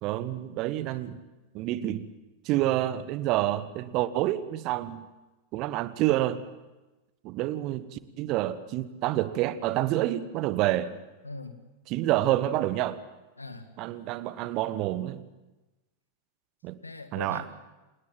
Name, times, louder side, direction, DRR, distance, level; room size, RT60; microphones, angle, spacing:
voice 1, 0.0-1.2 1.5-2.1 2.4-5.1 5.5-6.4 7.2-10.9 11.9-13.0 13.8-15.3 16.6-16.8 17.1-17.4, right 14 dB, 40° right, 16 dB, 1.2 m, -28 dB
voice 2, 11.2-11.6 13.4-13.7 16.8-17.5, left 3 dB, 80° left, 9 dB, 2.0 m, -41 dB
26.5 x 19.5 x 7.7 m, 1.1 s
figure-of-eight pair, 90°, 0 cm